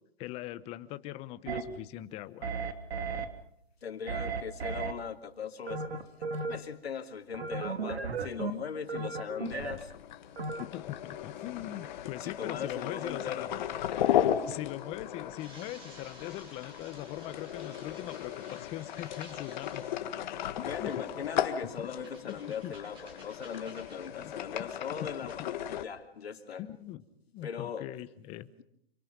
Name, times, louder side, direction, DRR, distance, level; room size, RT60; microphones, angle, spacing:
voice 1, 0.2-2.5 10.4-13.6 13.9-19.9 20.6-20.9 21.8-21.9 22.2-22.7 24.2-24.3 24.6-24.7 25.0-25.5 26.6-27.0 27.3-28.5, left 15 dB, 20° left, 13 dB, 0.9 m, -41 dB
sound 1, 1.5-1.6 2.4-3.3 4.1-4.9 5.7-6.6 7.3-8.5 8.9-9.8 10.4-10.6, right 4 dB, 85° right, 2.7 m, -34 dB
voice 2, 3.8-6.0 6.4-9.9 12.2-13.5 20.6-25.3 25.7-26.6 27.4-27.9, left 7 dB, 80° left, 6 dB, 2.9 m, -39 dB
sound 2, 9.4-25.8, left 10 dB, 45° left, 1.8 m, -36 dB
sound 3, 14.0-25.5, right 1 dB, 15° right, 5.7 m, -57 dB
27.0 x 24.5 x 5.3 m, 0.73 s
hypercardioid pair, 150°, 31 cm